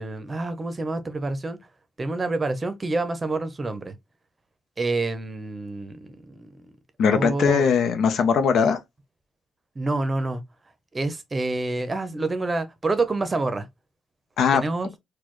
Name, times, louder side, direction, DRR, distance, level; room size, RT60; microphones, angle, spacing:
voice 1, 0.0-1.6 2.0-3.9 4.8-6.5 7.1-7.7 9.8-10.4 10.9-13.7 14.5-14.9, right 2 dB, 25° right, 0.7 m, -27 dB
voice 2, 7.0-8.8 14.4-14.6, left 6 dB, 70° left, 0.6 m, -20 dB
4.2 x 2.2 x 3.0 m
cardioid pair, 90°, 0 cm